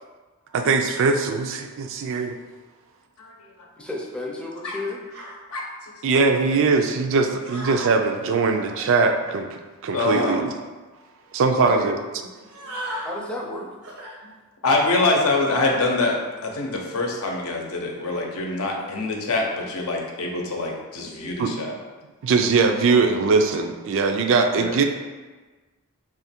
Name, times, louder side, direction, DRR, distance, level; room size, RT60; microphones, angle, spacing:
voice 1, 0.5-2.4 6.0-9.5 9.8-10.5 11.3-12.0 21.4-21.5 22.2-24.8, right 4 dB, 60° right, 5 dB, 0.3 m, -21 dB
voice 2, 3.8-5.0 11.6-12.0 13.0-13.7, left 2 dB, 5° left, -2 dB, 0.4 m, -32 dB
sound 1, 5.1-5.4 6.4-6.5 7.4-7.9 8.4-8.8 10.0-10.4 11.0-11.1 11.3-11.5 12.4-13.1 13.8-14.2 14.7-15.0, equal, 80° right, 0.7 m, -36 dB
voice 3, 9.9-10.4 14.6-16.1 16.4-21.7 24.5-24.8, left 2 dB, 80° left, 0 dB, 0.7 m, -24 dB
3.0 x 2.4 x 4.2 m, 1.3 s
head